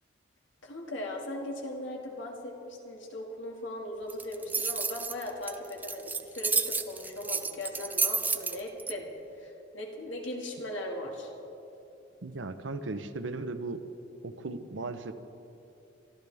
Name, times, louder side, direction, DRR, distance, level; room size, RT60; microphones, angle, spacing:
voice 1, 0.6-9.1 9.3-11.3, left 1 dB, 80° left, 0 dB, 2.2 m, -38 dB
sound 1, 4.1-8.9, right 4 dB, 10° right, 0.4 m, -30 dB
voice 2, 12.2-13.8 14.2-15.1, right 3 dB, 75° right, 10 dB, 0.8 m, -36 dB
23.0 x 13.5 x 3.5 m, 2.8 s
head